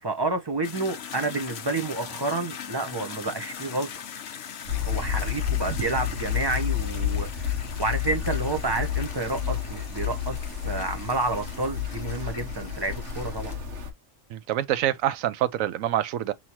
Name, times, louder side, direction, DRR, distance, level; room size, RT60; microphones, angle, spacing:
voice 1, 0.0-3.9 4.8-13.6, right 3 dB, 30° right, 0.5 m, -30 dB
sound 1, 0.6-13.6, left 8 dB, 60° left, 0.8 m, -41 dB
sound 2, 4.6-13.9, left 9 dB, 60° right, 1.3 m, -30 dB
voice 2, 14.3-16.3, right 12 dB, 85° right, 1.0 m, -26 dB
5.6 x 2.9 x 2.9 m
omnidirectional pair, 1.4 m